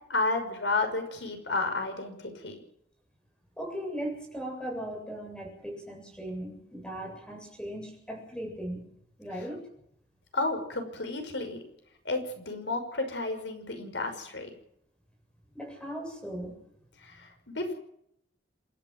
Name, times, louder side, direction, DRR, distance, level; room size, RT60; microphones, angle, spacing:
voice 1, 0.1-2.6 10.3-11.6 12.0-14.5 17.0-17.7, left 3 dB, 90° left, 6 dB, 5.9 m, -32 dB
voice 2, 3.6-8.9 9.2-9.7 15.5-16.6, right 1 dB, 5° left, 1 dB, 7.7 m, -38 dB
27.0 x 12.5 x 7.7 m, 0.73 s
head